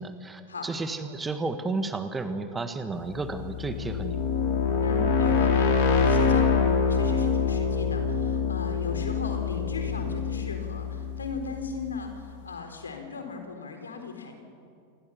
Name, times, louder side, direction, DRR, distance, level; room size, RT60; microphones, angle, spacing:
voice 1, 0.0-4.2, right 3 dB, 15° right, 9 dB, 1.7 m, -32 dB
sound 1, 3.1-11.9, left 6 dB, 50° left, 4.0 m, -25 dB
voice 2, 4.8-14.4, left 5 dB, 70° left, 4 dB, 4.0 m, -37 dB
28.0 x 21.5 x 7.0 m, 2.3 s
figure-of-eight pair, 90°, 0 cm